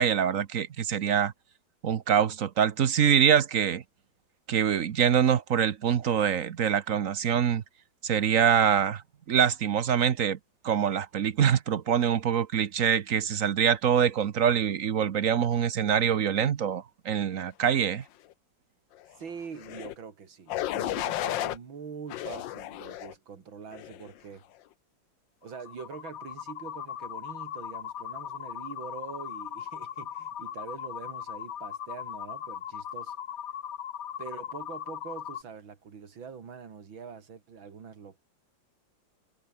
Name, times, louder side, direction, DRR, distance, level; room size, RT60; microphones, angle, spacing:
voice 1, 0.0-1.3 1.8-3.8 4.5-7.6 8.0-9.0 9.3-10.4 10.6-18.0, right 8 dB, 50° right, 1.1 m, -24 dB
voice 2, 19.2-24.4 25.4-33.2 34.2-38.2, right 6 dB, 85° right, 3.1 m, -44 dB
sound 1, 19.6-19.9 20.5-21.6 22.1-23.1 23.7-24.1, left 14 dB, 75° left, 1.4 m, -33 dB
sound 2, 25.4-35.4, left 9 dB, 55° left, 1.3 m, -39 dB
omnidirectional pair, 2.1 m